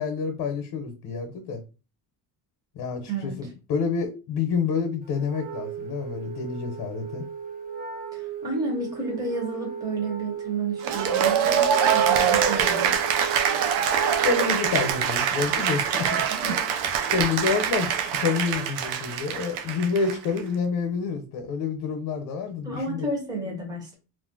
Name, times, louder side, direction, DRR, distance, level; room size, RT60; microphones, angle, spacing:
voice 1, 0.0-1.6 2.8-7.3 14.2-16.4 17.1-23.1, left 5 dB, 55° left, 5 dB, 0.7 m, -28 dB
voice 2, 3.0-3.5 8.1-12.9 16.3-16.6 22.6-23.9, right 2 dB, 10° right, -1 dB, 0.7 m, -31 dB
Wind instrument woodwind instrument, 5.3-15.0, right 7 dB, 25° right, 0.4 m, -35 dB
Cheering / Applause, 10.8-20.4, right 8 dB, 85° right, 0.6 m, -24 dB
2.5 x 2.1 x 3.7 m, 0.32 s
cardioid pair, 155°, 39 cm